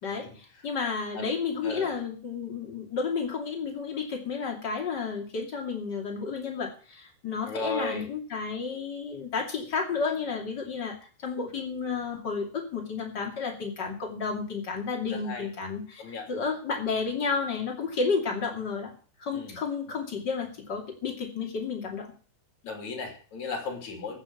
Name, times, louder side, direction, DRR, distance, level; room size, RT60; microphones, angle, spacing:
voice 1, 0.0-10.9 11.2-16.0 16.3-18.9 19.2-22.1, left 5 dB, 30° left, 1 dB, 2.9 m, -31 dB
voice 2, 1.6-1.9 7.4-8.0 15.3-15.5 16.0-16.3 19.3-19.6 22.6-24.2, left 3 dB, 55° left, 3 dB, 4.0 m, -35 dB
14.5 x 7.4 x 7.1 m, 0.41 s
omnidirectional pair, 4.1 m